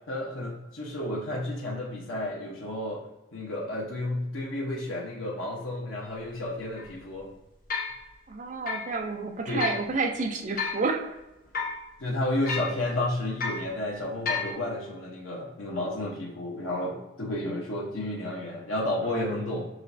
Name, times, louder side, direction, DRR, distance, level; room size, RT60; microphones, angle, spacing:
voice 1, 0.1-3.0 3.3-7.3 9.5-9.6 12.0-19.7, left 1 dB, 90° left, -3 dB, 0.9 m, -31 dB
sound 1, 6.0-6.1 6.8-6.9 7.7-8.0 8.7-8.9 9.6-9.8 10.6-10.9 11.5-11.8 12.4-12.8 13.4-13.7 14.2-14.5, left 4 dB, 45° left, 0.9 m, -31 dB
voice 2, 8.3-11.2 19.1-19.4, right 3 dB, 40° right, 4 dB, 0.4 m, -30 dB
6.3 x 3.1 x 2.6 m, 1.0 s
head